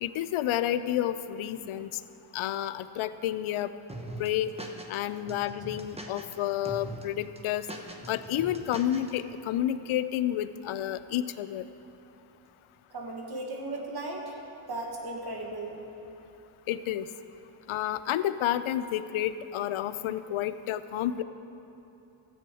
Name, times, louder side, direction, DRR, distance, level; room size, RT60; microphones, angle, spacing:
voice 1, 0.0-1.9 2.3-3.7 4.2-4.5 4.9-7.7 8.1-11.6 16.7-17.1 17.7-21.2, left 12 dB, 75° left, 13 dB, 0.6 m, -30 dB
sound 1, 3.9-5.0 5.3-6.4 6.7-7.0 7.4-9.1, right 1 dB, 10° right, 1.0 m, -41 dB
voice 2, 12.9-14.4 14.7-15.8, right 2 dB, 50° right, 0 dB, 1.9 m, -36 dB
14.0 x 7.9 x 4.8 m, 2.9 s
cardioid pair, 80°, 50 cm